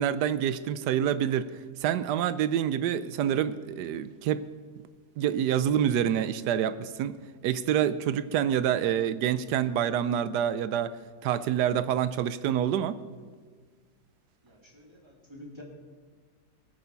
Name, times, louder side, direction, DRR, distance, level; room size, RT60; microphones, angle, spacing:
voice 1, 0.0-1.5 1.8-4.5 5.2-10.9 11.2-13.0, right 9 dB, 85° right, 14 dB, 1.2 m, -27 dB
voice 2, 14.4-15.6, left 1 dB, 15° right, -2 dB, 2.5 m, -49 dB
20.0 x 9.0 x 5.6 m, 1.5 s
omnidirectional pair, 1.7 m